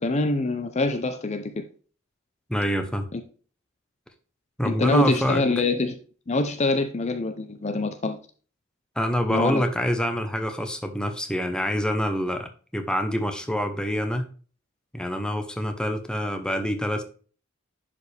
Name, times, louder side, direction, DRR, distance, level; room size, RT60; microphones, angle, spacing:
voice 1, 0.0-1.6 3.1-3.2 4.6-6.0 6.3-8.2 9.3-9.6, left 2 dB, 35° left, 8 dB, 0.6 m, -24 dB
voice 2, 2.5-3.1 4.6-5.4 9.0-14.3 14.9-17.0, equal, 5° left, 6 dB, 0.9 m, -26 dB
10.5 x 5.1 x 3.4 m, 0.40 s
head